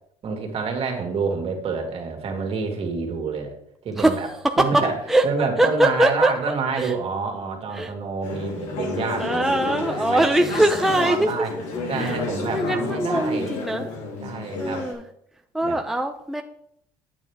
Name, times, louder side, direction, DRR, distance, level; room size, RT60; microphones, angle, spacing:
voice 1, 0.2-3.5 3.8-4.3 4.6-5.0 5.2-11.5 11.9-13.5 14.2-14.9 15.6-15.8, right 4 dB, 50° right, 2 dB, 2.2 m, -28 dB
voice 2, 4.0-4.8 5.1-5.2 5.6-6.3 6.7-6.9 7.7-7.9 9.2-11.3 11.9-13.9 14.6-15.0 15.5-16.4, right 1 dB, ahead, 4 dB, 0.6 m, -22 dB
Conversation / Chatter, 8.2-14.9, left 3 dB, 75° left, 3.5 m, -31 dB
9.0 x 8.6 x 3.5 m, 0.73 s
supercardioid pair, 90°, 13 cm